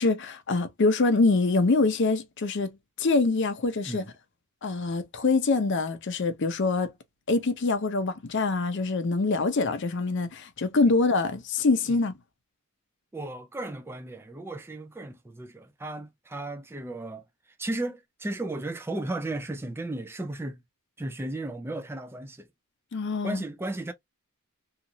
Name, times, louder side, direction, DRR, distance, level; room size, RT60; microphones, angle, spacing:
voice 1, 0.0-4.1 4.6-6.9 7.3-12.1 22.9-23.4, left 3 dB, 55° left, 0.5 m, -25 dB
voice 2, 13.1-17.2 17.6-20.6 21.0-22.5 23.2-23.9, right 2 dB, 10° right, 0.3 m, -35 dB
2.9 x 2.4 x 2.6 m
head